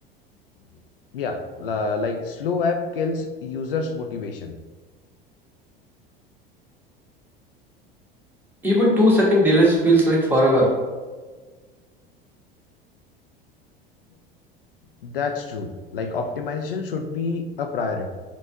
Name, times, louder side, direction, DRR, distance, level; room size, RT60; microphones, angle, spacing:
voice 1, 1.1-4.6 15.0-18.1, left 4 dB, 70° left, 6 dB, 0.5 m, -27 dB
voice 2, 8.6-10.7, equal, 5° right, -5 dB, 1.3 m, -17 dB
4.0 x 2.4 x 3.9 m, 1.3 s
figure-of-eight pair, 75°, 29 cm